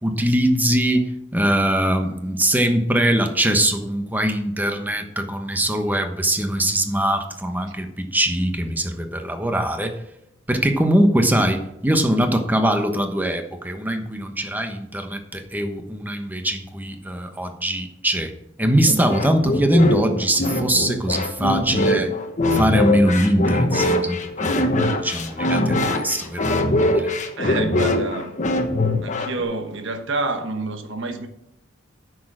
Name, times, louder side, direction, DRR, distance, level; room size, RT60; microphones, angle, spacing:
voice 1, 0.0-10.0 10.5-18.3 18.6-22.1 22.5-24.7 25.0-26.5 26.9-27.1, right 1 dB, 10° right, 1.1 m, -22 dB
sound 1, 18.9-29.4, left 1 dB, 40° left, 1.1 m, -22 dB
voice 2, 27.4-28.4 29.0-31.3, right 2 dB, 65° right, 1.3 m, -28 dB
9.4 x 6.4 x 6.2 m
head